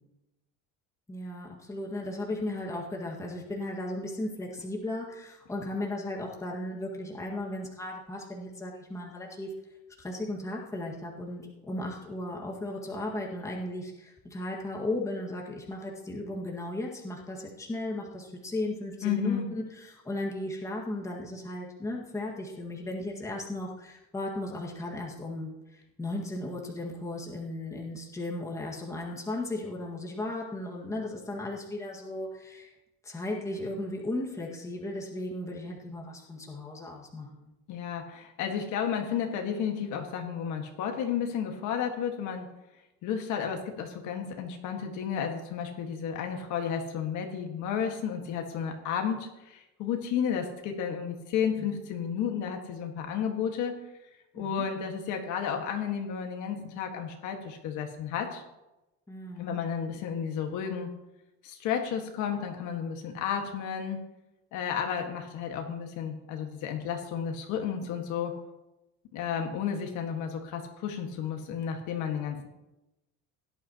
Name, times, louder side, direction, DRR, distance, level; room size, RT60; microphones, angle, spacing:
voice 1, 1.1-9.5 10.0-32.7 33.0-37.5 54.3-54.7 59.1-59.6, left 1 dB, 10° left, -2 dB, 1.8 m, -36 dB
voice 2, 19.0-19.5 37.7-42.5 43.0-53.8 54.3-58.4 59.4-60.9 61.4-64.0 64.5-68.3 69.1-72.5, left 7 dB, 60° left, 3 dB, 1.7 m, -32 dB
17.0 x 11.0 x 2.9 m, 0.96 s
cardioid pair, 165°, 33 cm